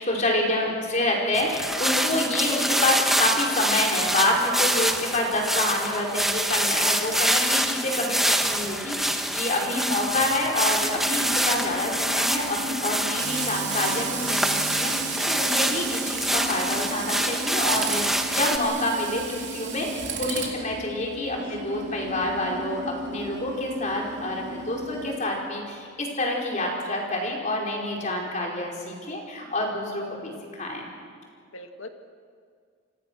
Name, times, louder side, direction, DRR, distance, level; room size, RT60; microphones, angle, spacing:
voice 1, 0.0-30.8, left 1 dB, 35° left, -1 dB, 5.0 m, -27 dB
sound 1, 1.3-18.6, right 1 dB, ahead, 1.2 m, -26 dB
Tools, 10.8-25.2, right 3 dB, 55° right, 3.8 m, -34 dB
voice 2, 15.4-15.8 30.1-30.2 31.5-31.9, left 2 dB, 65° left, 5 dB, 2.1 m, -41 dB
29.5 x 25.0 x 6.4 m, 2.1 s
head